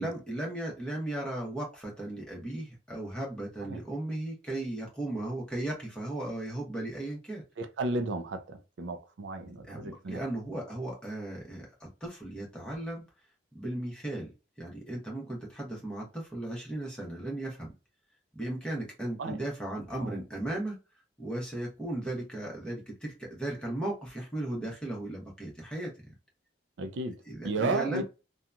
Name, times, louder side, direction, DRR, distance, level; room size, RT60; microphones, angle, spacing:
voice 1, 0.0-7.4 9.7-13.0 13.5-14.3 14.6-17.7 18.3-20.8 21.2-25.9 27.3-28.0, right 1 dB, 5° left, 1.0 m, -36 dB
voice 2, 7.6-10.2 19.2-19.4 20.0-20.2 26.8-28.0, right 3 dB, 75° right, 0.4 m, -34 dB
2.8 x 2.2 x 2.4 m
head